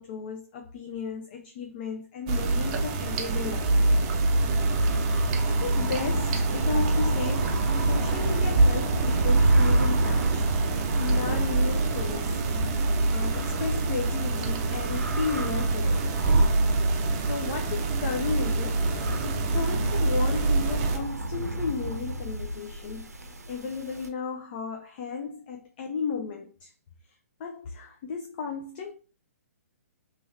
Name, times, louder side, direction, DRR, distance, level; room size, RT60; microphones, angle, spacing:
voice 1, 0.0-3.8 5.5-12.4 13.1-16.1 17.3-23.1 23.5-26.7 27.4-28.9, left 5 dB, 40° left, 0.4 m, -34 dB
sound 1, 2.3-21.0, right 2 dB, 30° right, 0.5 m, -25 dB
sound 2, 4.5-24.1, right 1 dB, 90° right, 0.5 m, -34 dB
2.9 x 2.8 x 2.4 m
figure-of-eight pair, 130°, 8 cm